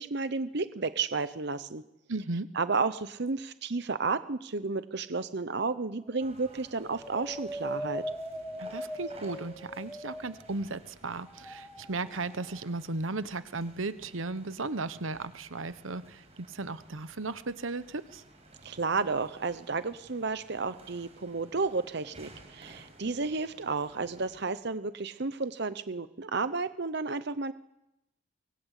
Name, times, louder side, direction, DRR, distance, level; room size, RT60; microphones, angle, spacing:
voice 1, 0.0-1.8 2.5-8.0 18.6-27.5, right 4 dB, 55° right, 13 dB, 0.9 m, -32 dB
voice 2, 2.1-2.5 8.6-18.2, right 3 dB, 75° right, 14 dB, 1.1 m, -36 dB
sound 1, 5.8-6.2 6.6-10.7 11.3-12.6, equal, ahead, 3.0 m, -40 dB
sound 2, 6.2-24.5, right 1 dB, 30° right, 6.1 m, -55 dB
25.0 x 21.0 x 8.4 m, 0.89 s
head